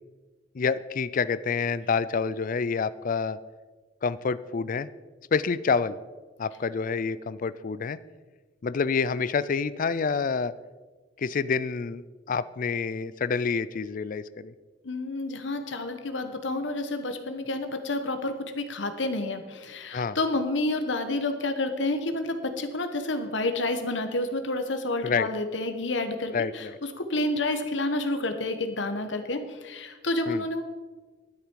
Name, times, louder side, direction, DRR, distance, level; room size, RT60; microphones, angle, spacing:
voice 1, 0.5-3.4 4.0-4.9 5.3-6.0 6.4-8.0 8.6-10.5 11.2-14.5 19.9-20.2 25.0-25.3 26.3-26.8 30.3-30.4, left 5 dB, 45° left, 16 dB, 0.4 m, -28 dB
voice 2, 14.8-26.7 27.0-30.6, left 2 dB, 80° left, 8 dB, 1.3 m, -29 dB
12.0 x 10.0 x 4.7 m, 1.3 s
head